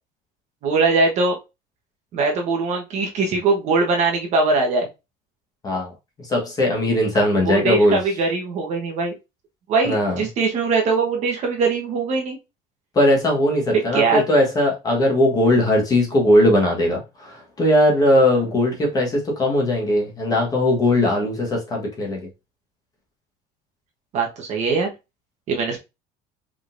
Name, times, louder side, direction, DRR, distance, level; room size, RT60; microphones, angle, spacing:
voice 1, 0.6-1.4 2.1-4.9 7.4-9.1 9.7-12.4 13.7-14.2 24.1-24.9 25.5-25.8, right 3 dB, 40° right, 1.2 m, -21 dB
voice 2, 6.3-8.0 9.9-10.2 12.9-22.2, left 1 dB, 20° left, 1.3 m, -19 dB
5.0 x 3.8 x 2.6 m
cardioid pair, 180°, 18 cm